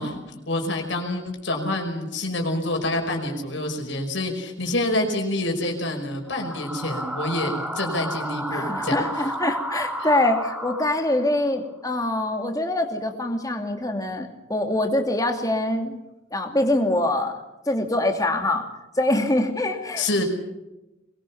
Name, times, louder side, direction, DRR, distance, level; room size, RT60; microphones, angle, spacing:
voice 1, 0.0-9.0 20.0-20.2, left 1 dB, 70° left, 2 dB, 5.4 m, -27 dB
sound 1, 6.3-11.4, right 1 dB, 5° right, 2.4 m, -32 dB
voice 2, 8.5-16.0 16.3-17.4 17.7-18.6 18.9-20.1, left 1 dB, 20° left, 4 dB, 2.6 m, -24 dB
23.0 x 21.0 x 7.2 m, 0.97 s
head